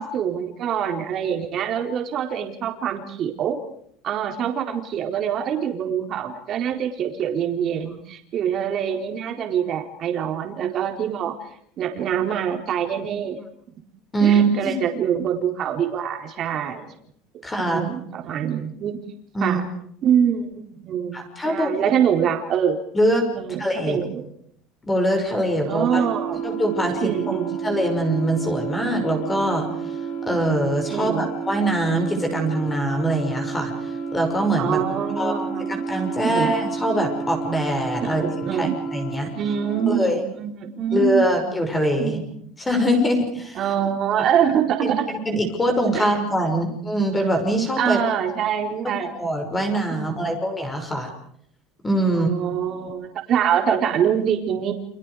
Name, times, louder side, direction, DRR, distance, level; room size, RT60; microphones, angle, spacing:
voice 1, 0.0-3.6 4.0-11.4 11.8-13.4 14.2-16.9 17.6-19.0 19.4-19.7 20.0-22.8 23.3-24.2 25.6-26.4 27.0-27.6 30.9-31.3 34.6-35.7 36.2-36.6 38.0-38.8 39.3-41.4 42.0-42.2 43.6-45.1 45.9-46.1 46.4-46.7 47.8-49.1 49.9-50.4 52.1-54.7, right 8 dB, 40° right, 4 dB, 4.3 m, -25 dB
voice 2, 14.1-14.8 17.4-17.8 19.3-19.6 21.1-21.7 22.9-23.3 23.6-24.0 24.8-26.1 26.4-29.7 30.3-33.7 34.1-34.8 35.2-35.3 35.9-38.2 38.5-39.3 39.9-40.2 40.9-42.2 42.6-43.6 44.8-48.0 48.8-51.1 51.8-52.3, right 1 dB, 10° left, 4 dB, 6.0 m, -23 dB
sound 1, 25.7-40.0, right 6 dB, 55° left, 4.5 m, -30 dB
30.0 x 27.5 x 5.0 m, 0.67 s
cardioid pair, 155°, 0 cm